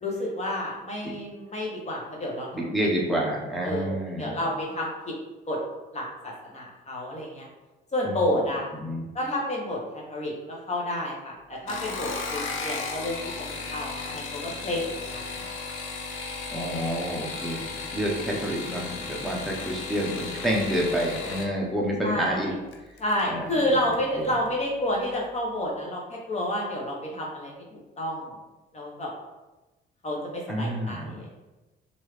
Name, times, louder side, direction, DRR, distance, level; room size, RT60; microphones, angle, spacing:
voice 1, 0.0-2.7 3.6-5.1 5.5-5.6 5.9-7.5 7.9-8.7 9.1-15.4 22.0-22.5 23.0-28.3 28.7-29.1 30.0-31.3, left 1 dB, 35° left, -2 dB, 1.0 m, -30 dB
voice 2, 2.5-4.4 8.0-8.4 8.8-9.0 16.5-22.5 23.3-23.6 24.2-24.3 30.5-31.2, equal, ahead, -3 dB, 0.8 m, -29 dB
sound 1, 11.6-21.5 22.7-23.2 23.6-24.1 24.3-24.4, left 4 dB, 85° left, 0.6 m, -35 dB
3.1 x 2.7 x 3.2 m, 1.1 s
cardioid pair, 90°, 20 cm